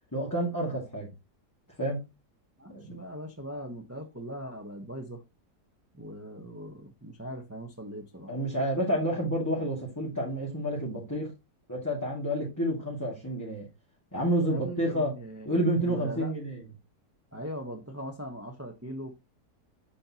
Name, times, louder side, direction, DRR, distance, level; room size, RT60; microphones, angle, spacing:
voice 1, 0.1-1.1 1.8-2.0 2.7-3.0 8.3-11.3 11.7-13.7 14.1-15.1 15.4-16.6, right 1 dB, 10° left, 2.4 m, -29 dB
voice 2, 2.6-5.2 5.9-8.3 14.5-15.5 15.8-16.3 17.3-19.1, equal, 10° right, 0.9 m, -40 dB
8.7 x 6.5 x 3.0 m
omnidirectional pair, 1.8 m